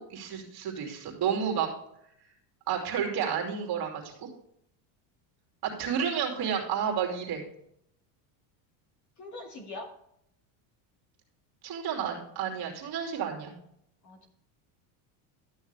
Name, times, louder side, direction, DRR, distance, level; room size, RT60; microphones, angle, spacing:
voice 1, 0.0-1.7 2.7-4.1 5.6-7.4 11.6-13.5, right 7 dB, 45° right, 1 dB, 3.0 m, -31 dB
voice 2, 9.2-9.9 14.0-14.3, left 2 dB, 35° left, 2 dB, 2.3 m, -42 dB
12.5 x 6.3 x 3.4 m, 0.74 s
supercardioid pair, 130°, 50 cm